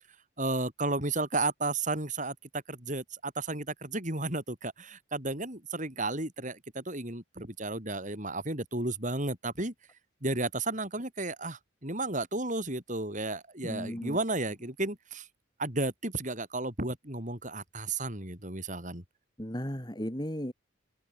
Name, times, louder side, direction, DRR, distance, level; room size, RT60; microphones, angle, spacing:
voice 1, 0.4-2.3 2.7-9.7 10.2-15.3 15.6-19.0, right 2 dB, 40° right, 6.0 m, -33 dB
voice 2, 13.6-14.2 19.4-20.5, equal, 20° left, 4.0 m, -35 dB
open air
head